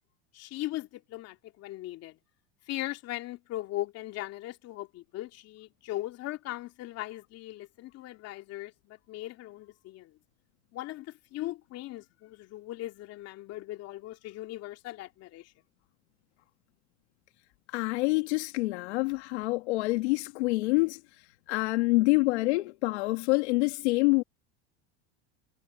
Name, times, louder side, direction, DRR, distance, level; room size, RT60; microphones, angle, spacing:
voice 1, 0.3-2.1 2.7-10.1 10.7-15.5, left 16 dB, 45° left, 2.7 m, -39 dB
voice 2, 17.7-21.0 21.5-24.2, left 24 dB, 80° left, 1.9 m, -26 dB
supercardioid pair, 130°, 34 cm